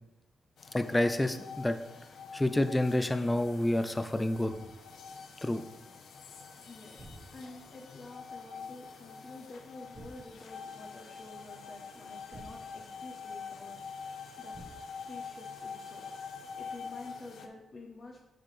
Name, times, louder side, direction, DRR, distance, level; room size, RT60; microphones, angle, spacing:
sound 1, 0.6-17.5, left 5 dB, 75° left, 0.8 m, -46 dB
voice 1, 0.7-1.8 2.3-4.5 5.4-5.6, left 1 dB, 10° left, 9 dB, 0.5 m, -28 dB
sound 2, 4.5-5.0 7.0-7.7 9.9-10.5 12.3-13.2 14.5-15.1, right 2 dB, 35° right, 1.6 m, -52 dB
voice 2, 6.6-13.7 14.4-14.6 15.0-18.2, left 2 dB, 40° left, 0 dB, 0.9 m, -49 dB
10.0 x 4.8 x 3.2 m, 0.93 s
cardioid pair, 110°, 0 cm